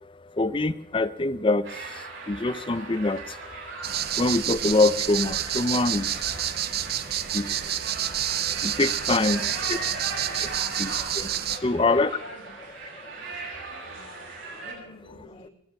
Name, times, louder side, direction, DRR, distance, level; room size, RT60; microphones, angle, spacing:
voice 1, 0.0-9.4 9.7-9.8 10.1-11.3 11.6-12.2 12.9-13.1, left 2 dB, 25° left, 14 dB, 0.5 m, -26 dB
sound 1, 1.6-14.7, right 3 dB, 65° right, 7.9 m, -38 dB
sound 2, 3.8-11.6, right 11 dB, 45° right, 0.6 m, -29 dB
voice 2, 9.1-10.0 10.3-10.5 11.4-12.5 13.8-14.3 14.6-15.5, left 1 dB, 80° left, -2 dB, 3.2 m, -47 dB
22.5 x 9.0 x 5.9 m, 0.79 s
head